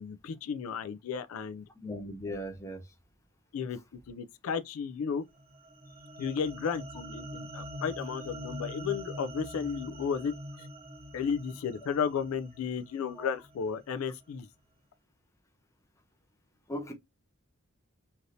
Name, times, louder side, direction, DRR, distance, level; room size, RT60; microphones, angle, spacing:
voice 1, 0.0-1.6 3.5-3.8 4.1-5.2 6.2-10.7 11.1-14.5, left 6 dB, 80° left, 0.4 m, -33 dB
voice 2, 1.8-2.9 13.2-13.3 16.7-16.9, equal, 15° left, 0.6 m, -38 dB
sound 1, 5.4-13.8, equal, 30° right, 0.6 m, -44 dB
3.2 x 2.6 x 2.6 m
head